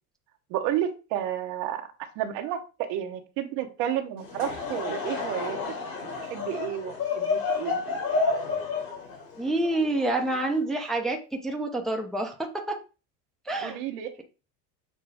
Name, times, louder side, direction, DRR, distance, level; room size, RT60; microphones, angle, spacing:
voice 1, 0.5-1.9 2.1-5.6 6.3-7.8 13.6-14.2, right 11 dB, 60° right, 6 dB, 1.1 m, -31 dB
Laughter / Crowd, 4.2-10.6, left 4 dB, 45° left, 2.4 m, -30 dB
voice 2, 9.4-12.8 13.5-13.8, right 2 dB, ahead, 1 dB, 0.7 m, -28 dB
6.7 x 2.2 x 3.4 m, 0.32 s
hypercardioid pair, 95°, 47 cm